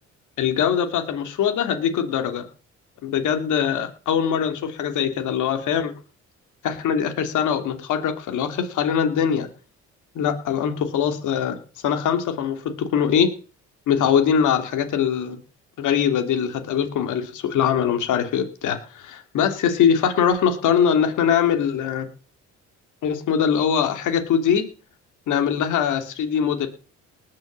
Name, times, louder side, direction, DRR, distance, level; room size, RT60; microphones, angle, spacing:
voice 1, 0.4-2.4 3.0-5.9 6.6-9.5 10.1-11.6 11.8-13.3 13.9-15.4 15.8-22.1 23.0-24.6 25.3-26.7, left 8 dB, 80° left, 6 dB, 2.5 m, -22 dB
19.0 x 6.4 x 7.4 m, 0.38 s
cardioid pair, 90°, 30 cm